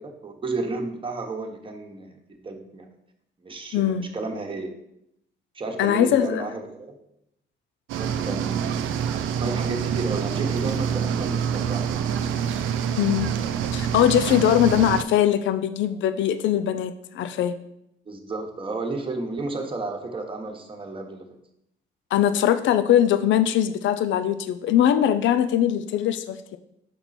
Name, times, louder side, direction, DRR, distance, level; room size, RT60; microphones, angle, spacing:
voice 1, 0.0-2.8 3.4-4.7 5.5-7.0 7.9-8.8 9.1-12.0 14.2-14.5 18.1-21.3, right 3 dB, 25° right, 2 dB, 1.2 m, -32 dB
voice 2, 3.7-4.1 5.8-6.4 13.0-13.3 13.7-17.6 22.1-26.6, left 10 dB, 70° left, 11 dB, 0.5 m, -21 dB
sound 1, 7.9-15.0, right 8 dB, 85° right, 0.5 m, -26 dB
6.8 x 4.4 x 4.2 m, 0.78 s
cardioid pair, 90°, 20 cm